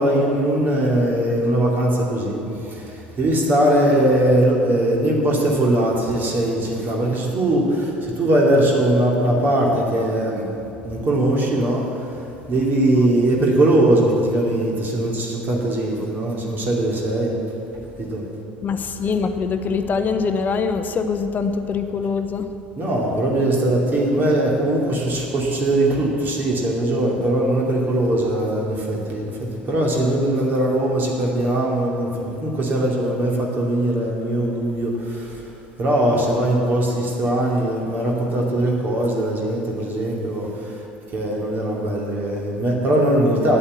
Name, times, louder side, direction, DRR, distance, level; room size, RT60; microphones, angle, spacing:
voice 1, 0.0-10.5 10.8-12.1 12.5-17.4 18.0-18.2 22.8-35.4 35.8-40.8 41.1-43.6, right 1 dB, 35° right, -2 dB, 2.5 m, -20 dB
voice 2, 18.6-22.5, left 5 dB, 30° left, 9 dB, 0.8 m, -23 dB
9.4 x 8.4 x 7.9 m, 2.7 s
figure-of-eight pair, 65°, 6 cm